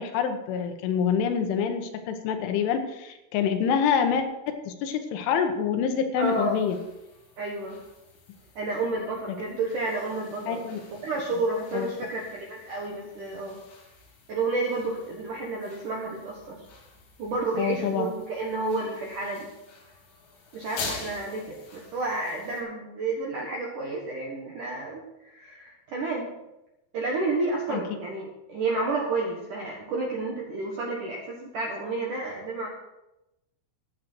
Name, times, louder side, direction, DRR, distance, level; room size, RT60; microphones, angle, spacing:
voice 1, 0.0-6.8 9.3-9.4 10.5-10.8 11.7-11.9 17.6-18.1 27.7-27.8, left 7 dB, 75° left, 6 dB, 3.3 m, -26 dB
sound 1, 6.2-22.6, left 4 dB, 45° left, 3.3 m, -46 dB
voice 2, 6.2-6.6 7.4-7.8 8.6-10.6 11.0-13.6 14.3-16.6 17.2-19.5 20.5-26.3 26.9-32.7, right 3 dB, 65° right, -1 dB, 2.0 m, -30 dB
14.0 x 10.0 x 4.5 m, 0.93 s
omnidirectional pair, 5.8 m